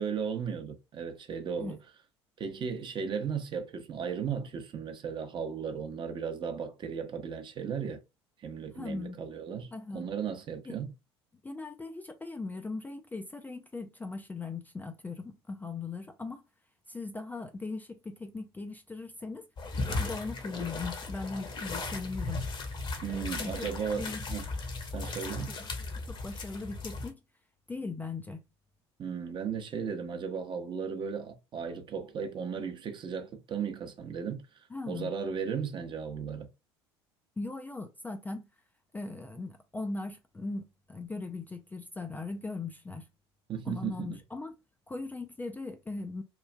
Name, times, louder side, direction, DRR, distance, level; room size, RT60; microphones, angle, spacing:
voice 1, 0.0-1.8 2.4-8.0 8.4-10.9 23.0-24.5 24.9-25.5 29.0-36.5 43.5-44.2, right 6 dB, 35° right, 0.7 m, -36 dB
voice 2, 8.7-9.2 9.7-10.1 10.6-10.8 11.4-16.4 16.9-19.4 19.9-22.4 23.1-23.7 23.9-24.2 25.4-25.7 26.1-27.2 27.7-28.4 34.7-35.1 37.4-38.5 38.9-43.1 43.7-44.5 44.9-46.2, left 3 dB, 10° left, 0.4 m, -39 dB
sound 1, 19.6-27.1, left 3 dB, 35° left, 0.9 m, -36 dB
3.1 x 2.4 x 2.2 m
figure-of-eight pair, 65°, 14 cm